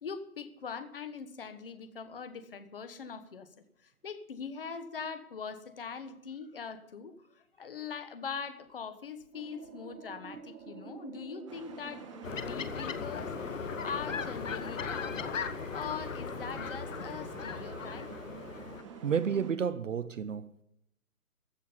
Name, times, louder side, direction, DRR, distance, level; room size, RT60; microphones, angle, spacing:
voice 1, 0.0-3.5 3.8-12.0 12.5-15.4 15.7-18.1, left 6 dB, 40° left, 1.2 m, -42 dB
sound 1, 9.3-19.5, right 5 dB, 85° right, 1.7 m, -49 dB
sound 2, 11.5-19.5, right 5 dB, 20° right, 1.4 m, -50 dB
sound 3, 12.2-18.8, left 6 dB, 60° left, 1.1 m, -38 dB
voice 2, 19.0-20.6, right 7 dB, 55° right, 0.7 m, -31 dB
15.0 x 6.2 x 9.4 m
hypercardioid pair, 170°, 45 cm